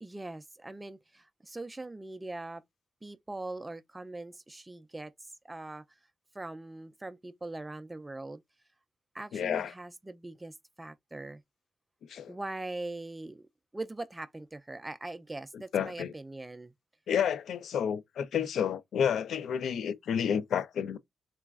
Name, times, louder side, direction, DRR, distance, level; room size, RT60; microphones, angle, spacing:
voice 1, 0.0-2.6 3.0-5.1 5.4-5.8 6.3-8.4 9.1-11.4 12.3-13.5 13.7-16.7, right 2 dB, 15° right, 0.3 m, -41 dB
voice 2, 9.3-9.7 12.1-12.3 15.7-16.1 17.1-21.0, left 8 dB, 70° left, 0.3 m, -30 dB
3.9 x 2.3 x 2.3 m
cardioid pair, 105°, 0 cm